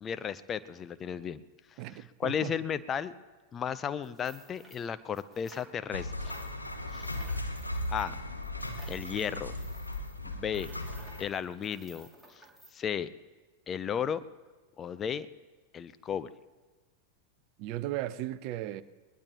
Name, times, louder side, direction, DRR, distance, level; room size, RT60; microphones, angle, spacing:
voice 1, 0.0-1.4 2.2-3.1 3.5-6.4 6.9-7.1 7.9-8.1 8.9-9.5 10.2-10.7 11.2-12.4 12.7-13.1 13.7-14.2 14.8-15.3 15.7-16.3, left 8 dB, 25° left, 0.5 m, -34 dB
voice 2, 1.8-2.6 8.1-8.2 17.6-18.8, right 14 dB, 45° right, 0.5 m, -36 dB
sound 1, 4.0-6.0 6.2-12.7, right 2 dB, 5° right, 2.3 m, -55 dB
sound 2, 5.9-11.2, left 1 dB, 85° left, 1.2 m, -37 dB
20.5 x 20.5 x 2.9 m
figure-of-eight pair, 90°, 0 cm